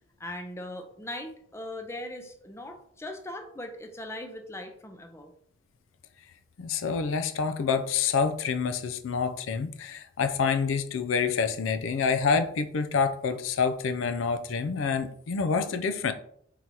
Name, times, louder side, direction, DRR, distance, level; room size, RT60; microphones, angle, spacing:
voice 1, 0.2-5.3, left 1 dB, 15° left, 5 dB, 0.5 m, -39 dB
voice 2, 6.6-16.1, left 5 dB, 85° left, 9 dB, 0.4 m, -27 dB
3.8 x 2.8 x 4.6 m, 0.66 s
head